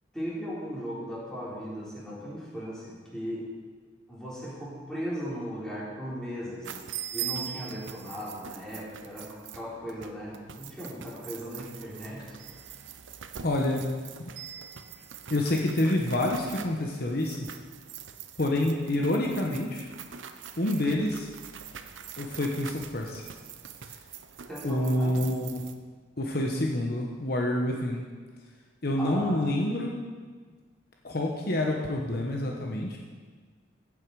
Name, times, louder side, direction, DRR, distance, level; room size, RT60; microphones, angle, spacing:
voice 1, 0.1-3.5 4.1-6.7 7.1-12.4 14.9-15.0 24.5-25.2 29.0-29.5, equal, 5° left, -8 dB, 3.9 m, -37 dB
sound 1, 6.6-25.7, right 9 dB, 90° right, 0.8 m, -43 dB
voice 2, 13.4-13.8 15.3-17.5 18.4-19.9 20.6-21.3 22.2-23.2 23.9-24.0 24.6-25.6 26.2-28.0 28.8-30.0 31.0-33.0, left 1 dB, 55° left, 0 dB, 1.2 m, -27 dB
15.0 x 8.6 x 4.8 m, 1.5 s
head